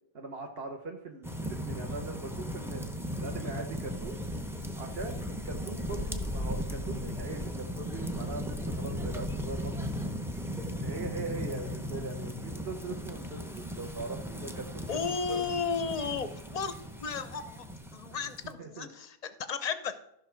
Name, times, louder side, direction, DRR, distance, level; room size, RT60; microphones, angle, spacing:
voice 1, 0.1-2.8 3.2-4.2 4.8-9.9 10.6-15.4 18.6-18.9, right 3 dB, 45° right, 2 dB, 1.1 m, -41 dB
sound 1, 1.2-18.5, equal, 5° right, 0.5 m, -37 dB
voice 2, 14.9-16.7 17.0-20.0, left 5 dB, 40° left, 11 dB, 0.6 m, -34 dB
13.5 x 6.2 x 4.6 m, 0.80 s
omnidirectional pair, 1.5 m